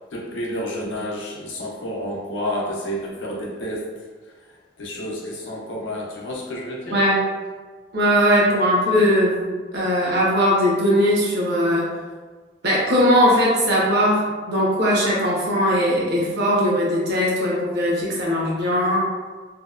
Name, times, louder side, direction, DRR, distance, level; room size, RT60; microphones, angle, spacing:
voice 1, 0.1-3.9 4.8-7.0 8.5-8.6, equal, 90° left, -3 dB, 0.6 m, -30 dB
voice 2, 6.9-7.2 7.9-11.9 12.6-19.0, equal, 65° right, -5 dB, 0.7 m, -19 dB
2.7 x 2.1 x 2.4 m, 1.4 s
head